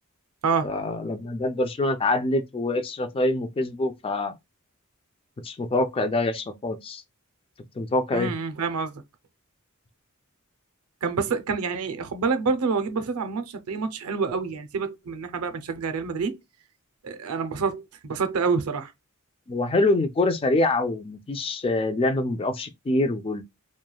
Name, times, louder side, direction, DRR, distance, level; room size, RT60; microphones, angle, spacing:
voice 1, 0.6-4.3 5.4-7.0 7.8-8.3 19.5-23.4, left 2 dB, 25° left, 0.3 m, -25 dB
voice 2, 8.1-8.9 11.0-16.4 17.0-18.9, right 5 dB, 75° right, 0.5 m, -27 dB
3.0 x 2.2 x 2.3 m
head